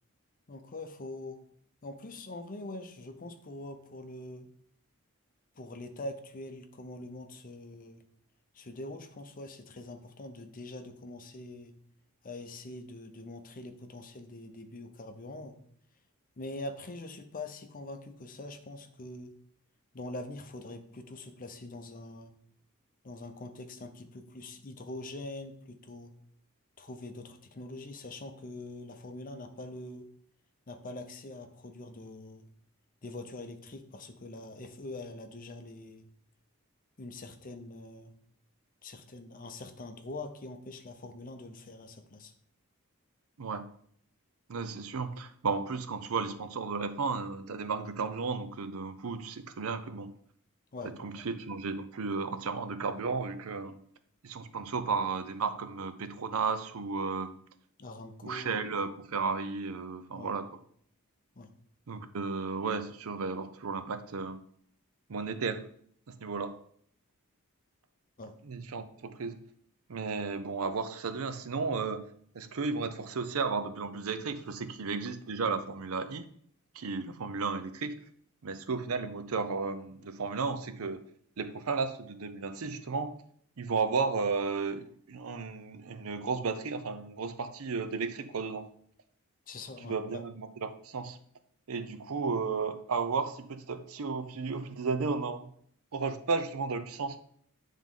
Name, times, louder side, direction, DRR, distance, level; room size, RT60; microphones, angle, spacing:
voice 1, 0.5-1.4 1.8-4.5 5.6-8.0 8.5-11.7 12.2-15.6 16.4-19.3 19.9-22.3 23.0-26.1 26.8-30.1 30.7-32.5 33.0-36.1 37.0-38.1 38.8-42.3 50.7-51.3 57.8-58.6 60.1-60.4 61.3-61.5 68.2-68.3 89.5-90.2, left 2 dB, 40° left, 7 dB, 0.7 m, -43 dB
voice 2, 43.4-43.7 44.5-50.1 51.0-53.8 54.2-57.4 58.2-60.5 61.9-64.4 65.1-65.7 66.1-66.6 68.4-69.4 69.9-72.1 72.3-76.2 76.7-78.0 78.4-81.0 81.4-83.2 83.6-88.7 89.8-91.2 91.7-95.5 95.9-97.2, right 4 dB, 70° right, 11 dB, 0.6 m, -34 dB
9.1 x 3.6 x 3.7 m, 0.62 s
head